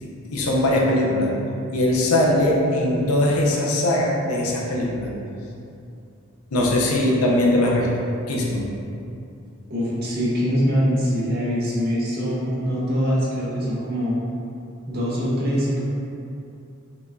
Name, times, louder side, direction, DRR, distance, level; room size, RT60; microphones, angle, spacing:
voice 1, 0.0-1.3 1.7-5.1 6.5-7.9 8.3-8.7, left 1 dB, 90° left, -2 dB, 0.5 m, -21 dB
voice 2, 9.7-14.2 14.9-15.8, equal, 45° right, -7 dB, 0.8 m, -23 dB
5.0 x 2.3 x 2.4 m, 2.6 s
head